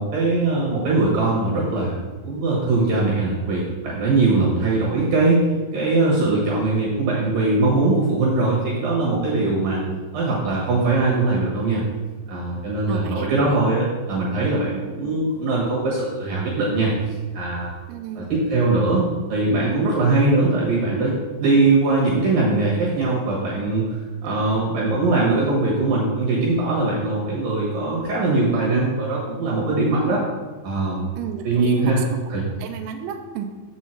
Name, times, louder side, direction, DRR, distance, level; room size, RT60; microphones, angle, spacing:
voice 1, 0.0-5.4 5.7-9.8 10.1-11.8 12.3-16.9 17.3-17.7 18.2-19.0 19.3-30.2 30.6-31.1 31.4-32.0 32.3-32.4, right 3 dB, 65° right, -4 dB, 2.3 m, -21 dB
voice 2, 4.3-4.6 9.6-10.0 12.9-13.3 17.9-18.3 24.3-24.7 31.2-32.2 32.6-33.5, right 7 dB, 85° right, 6 dB, 2.9 m, -33 dB
7.3 x 7.0 x 4.4 m, 1.3 s
omnidirectional pair, 5.6 m